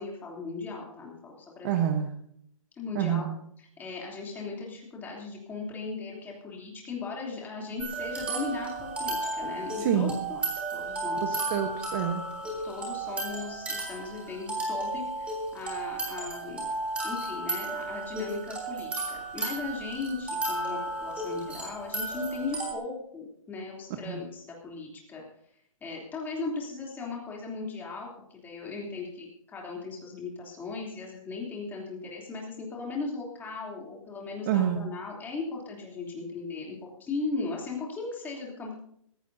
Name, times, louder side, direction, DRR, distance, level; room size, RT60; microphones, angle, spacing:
voice 1, 0.0-1.7 2.8-3.3 3.6-11.4 12.4-16.6 17.0-25.2 25.8-38.7, left 4 dB, 10° left, -2 dB, 3.2 m, -37 dB
voice 2, 1.6-2.1 2.9-3.4 9.8-10.2 11.2-12.2 24.1-24.2 34.5-34.9, right 9 dB, 30° right, 6 dB, 1.2 m, -27 dB
sound 1, 7.8-22.7, right 2 dB, 5° right, 3.1 m, -34 dB
20.5 x 15.5 x 2.8 m, 0.68 s
hypercardioid pair, 155°, 17 cm